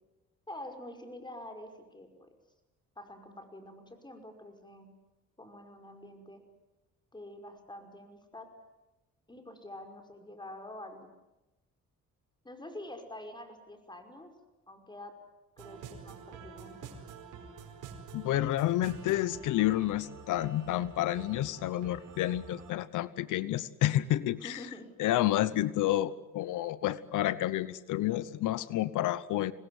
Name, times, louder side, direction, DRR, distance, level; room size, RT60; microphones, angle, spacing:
voice 1, 0.5-2.3 3.0-4.9 5.4-6.4 7.1-8.5 9.3-11.1 12.4-14.3 14.7-15.1 15.6-16.9 24.4-24.9, left 1 dB, 15° left, 5 dB, 5.5 m, -47 dB
sound 1, 15.6-22.7, right 6 dB, 80° right, 5.0 m, -48 dB
voice 2, 18.1-24.6 25.0-29.5, left 14 dB, 85° left, 17 dB, 1.1 m, -30 dB
26.0 x 20.0 x 9.7 m, 1.0 s
cardioid pair, 90°, 30 cm